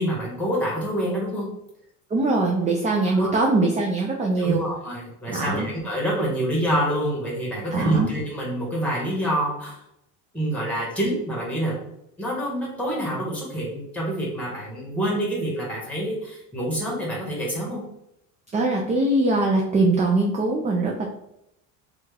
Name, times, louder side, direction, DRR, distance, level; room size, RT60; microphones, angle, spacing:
voice 1, 0.0-1.5 3.2-3.3 4.4-9.8 10.3-11.8 12.2-17.8, right 1 dB, 5° left, -4 dB, 1.4 m, -27 dB
voice 2, 2.1-4.6 5.3-5.7 7.7-8.1 18.5-20.9, right 2 dB, 20° right, -1 dB, 0.4 m, -22 dB
3.2 x 2.4 x 3.3 m, 0.81 s
cardioid pair, 115°, 36 cm